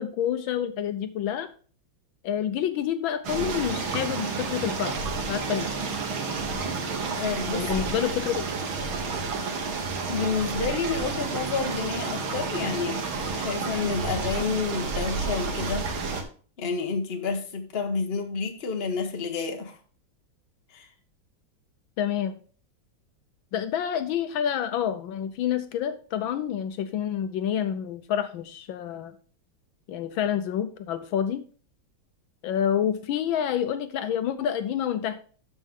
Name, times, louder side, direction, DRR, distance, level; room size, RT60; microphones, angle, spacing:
voice 1, 0.0-1.5 2.2-5.7 7.5-8.5 22.0-22.4 23.5-29.1 29.9-31.4 32.4-35.2, left 9 dB, 75° left, 1.4 m, -28 dB
sound 1, 3.2-16.2, right 4 dB, 75° right, 2.2 m, -30 dB
voice 2, 7.1-7.8 10.1-13.0 13.4-15.9 16.6-19.8 20.7-20.9, left 5 dB, 35° left, 1.3 m, -29 dB
12.5 x 5.3 x 3.7 m
omnidirectional pair, 2.2 m